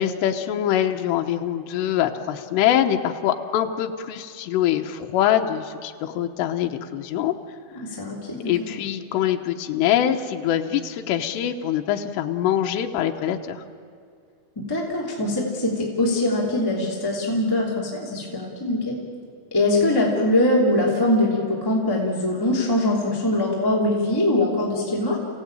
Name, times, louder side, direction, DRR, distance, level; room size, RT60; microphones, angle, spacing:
voice 1, 0.0-7.3 8.5-13.6, left 10 dB, 85° left, 4 dB, 3.1 m, -24 dB
voice 2, 7.8-8.7 14.6-19.0 19.5-25.2, left 1 dB, 5° left, -4 dB, 2.2 m, -22 dB
29.0 x 17.0 x 8.9 m, 2.3 s
omnidirectional pair, 4.9 m